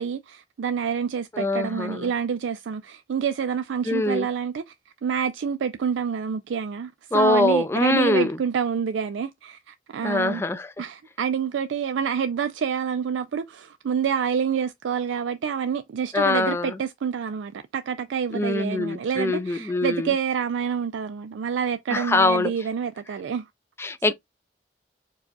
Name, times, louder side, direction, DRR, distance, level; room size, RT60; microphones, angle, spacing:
voice 1, 0.0-4.7 5.0-10.4 10.8-23.5, right 7 dB, 90° right, 0.4 m, -27 dB
voice 2, 1.3-2.1 3.9-4.3 7.1-8.4 10.0-10.7 16.1-16.8 18.3-20.1 21.9-22.5 23.8-24.1, left 2 dB, 15° left, 0.3 m, -23 dB
4.6 x 2.3 x 3.8 m
head